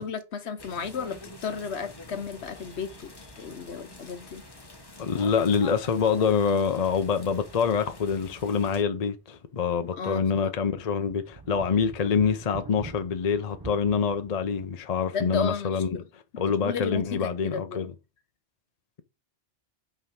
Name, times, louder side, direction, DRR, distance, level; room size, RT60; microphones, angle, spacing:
voice 1, 0.0-4.4 10.0-10.8 15.1-16.1 16.6-17.9, left 6 dB, 65° left, 1.2 m, -34 dB
sound 1, 0.6-8.8, left 1 dB, 20° left, 1.1 m, -47 dB
voice 2, 5.0-16.0 16.4-17.9, left 6 dB, 40° left, 0.7 m, -26 dB
sound 2, 7.9-9.0 9.4-9.5 10.0-14.8, right 4 dB, 20° right, 0.7 m, -46 dB
5.5 x 4.8 x 5.8 m
omnidirectional pair, 1.2 m